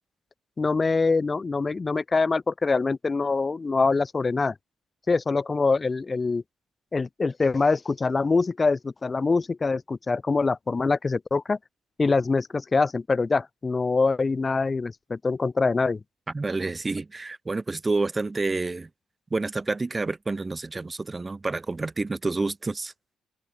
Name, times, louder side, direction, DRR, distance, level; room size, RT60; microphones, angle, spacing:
voice 1, 0.6-4.5 5.1-6.4 6.9-11.6 12.0-16.0, left 4 dB, 30° left, 0.4 m, -24 dB
voice 2, 16.3-18.9 19.3-22.9, right 3 dB, 25° right, 0.9 m, -29 dB
open air
cardioid pair, 90°, 0 cm